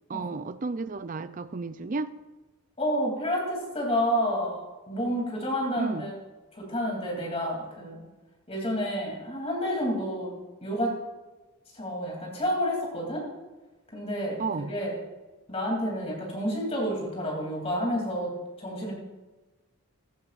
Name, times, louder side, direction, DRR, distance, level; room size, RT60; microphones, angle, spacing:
voice 1, 0.1-2.1 5.8-6.1 14.4-14.7, right 3 dB, 35° right, 13 dB, 0.4 m, -32 dB
voice 2, 2.8-6.1 6.5-8.0 8.5-10.3 10.6-11.0 11.7-13.2 13.9-15.0 15.5-18.3 18.6-18.9, equal, 25° left, -2 dB, 3.0 m, -29 dB
15.0 x 11.0 x 2.5 m, 1.2 s
head